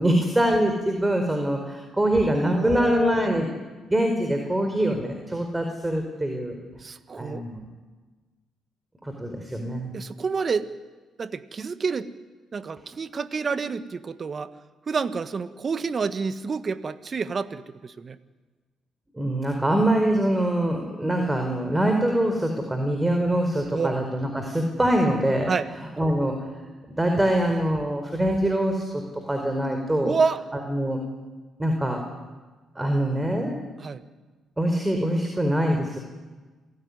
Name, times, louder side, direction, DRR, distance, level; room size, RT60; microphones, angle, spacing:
voice 1, 0.0-3.5 3.9-6.6 7.2-7.6 9.0-9.9 19.1-25.5 26.0-26.3 26.9-29.0 29.3-30.1 30.7-31.0 31.6-32.0 32.8-33.6 34.6-36.0, right 1 dB, 15° right, 4 dB, 4.6 m, -24 dB
voice 2, 2.3-3.3 6.8-7.4 9.9-10.7 11.2-12.1 12.5-14.5 14.9-18.2 23.7-24.0 25.5-25.7 30.0-30.4 33.8-34.0, right 5 dB, 45° right, 12 dB, 1.6 m, -28 dB
27.5 x 17.5 x 9.8 m, 1.3 s
supercardioid pair, 55°, 0 cm